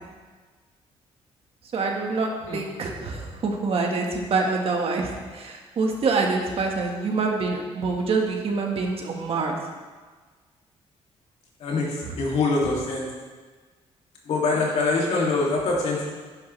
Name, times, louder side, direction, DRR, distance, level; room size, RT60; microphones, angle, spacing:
voice 1, 1.7-9.6 12.0-12.1, right 4 dB, 55° right, 1 dB, 1.8 m, -26 dB
voice 2, 11.6-13.1 14.2-16.1, left 3 dB, 70° left, -3 dB, 2.9 m, -24 dB
11.0 x 10.0 x 3.4 m, 1.4 s
cardioid pair, 95°, 12 cm